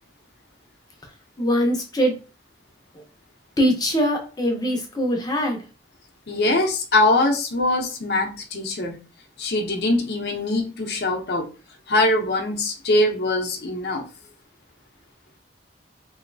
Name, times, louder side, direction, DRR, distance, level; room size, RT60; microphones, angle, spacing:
voice 1, 1.4-2.2 3.6-5.6, equal, 20° left, 0.7 m, -22 dB
voice 2, 6.3-9.0 9.4-11.5 11.9-14.0, left 2 dB, 65° left, 0.7 m, -22 dB
3.1 x 2.8 x 2.6 m
head